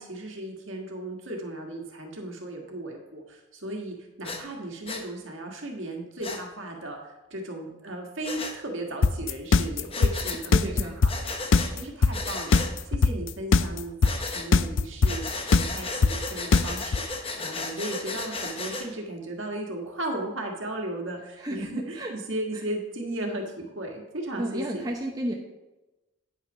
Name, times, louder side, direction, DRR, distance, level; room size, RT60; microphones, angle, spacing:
voice 1, 0.0-12.6 12.9-24.8, right 1 dB, 65° right, 1 dB, 1.7 m, -36 dB
Breathing, 4.2-4.4 4.9-5.0 6.2-6.4 8.2-8.5 9.9-10.4 11.1-11.7 12.1-12.7 14.0-14.5 15.1-18.9, left 3 dB, 25° left, 0.9 m, -34 dB
sound 1, 9.0-17.0, left 4 dB, 60° left, 0.4 m, -19 dB
voice 2, 10.5-11.0 21.4-22.1 24.4-25.3, right 1 dB, 15° right, 0 dB, 0.8 m, -32 dB
9.4 x 5.8 x 5.4 m, 1.0 s
head